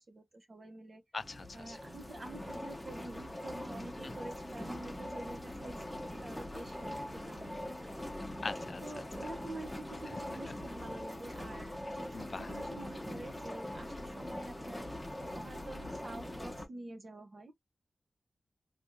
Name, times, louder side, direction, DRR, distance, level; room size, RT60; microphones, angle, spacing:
voice 1, 0.1-1.0 1.5-7.7 8.8-14.8 15.3-17.5, right 2 dB, 45° right, 0.7 m, -47 dB
voice 2, 1.1-1.8 4.0-4.1 8.4-9.0 10.1-10.2 10.5-10.6 12.1-12.5, left 3 dB, 50° left, 0.4 m, -42 dB
sound 1, 1.2-16.7, left 1 dB, 5° left, 0.8 m, -42 dB
3.3 x 2.7 x 2.6 m
wide cardioid pair, 115°, 0 cm